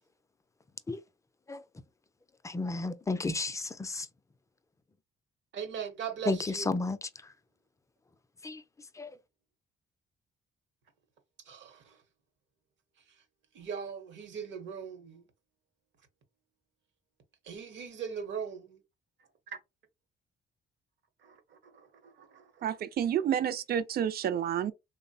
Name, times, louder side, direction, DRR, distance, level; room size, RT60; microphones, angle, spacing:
voice 1, 2.4-4.1 6.3-7.3 8.4-8.6 8.9-9.2, left 3 dB, 15° left, 0.3 m, -33 dB
voice 2, 5.5-6.7 11.5-12.0 13.5-15.2 17.4-18.8 19.5-19.6 21.2-22.7, right 7 dB, 70° right, 0.9 m, -40 dB
voice 3, 22.6-24.7, right 9 dB, 50° right, 0.4 m, -29 dB
3.2 x 2.0 x 2.7 m
cardioid pair, 90°, 20 cm